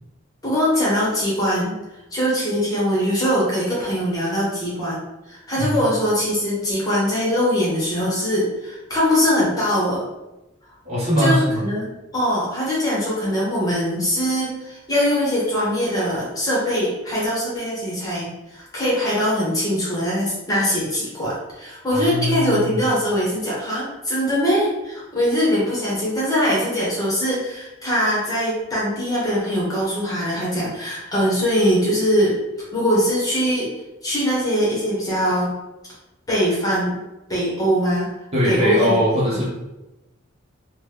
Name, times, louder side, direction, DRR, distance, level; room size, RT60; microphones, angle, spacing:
voice 1, 0.4-1.7 2.1-5.0 5.3-10.0 11.2-32.4 32.7-33.7 34.0-35.5 36.3-36.9 37.3-38.1 38.4-39.0, equal, 20° left, -6 dB, 1.0 m, -22 dB
voice 2, 10.8-11.6 21.9-22.7 38.3-39.5, equal, 35° right, -7 dB, 1.0 m, -21 dB
3.0 x 2.2 x 3.3 m, 0.99 s
head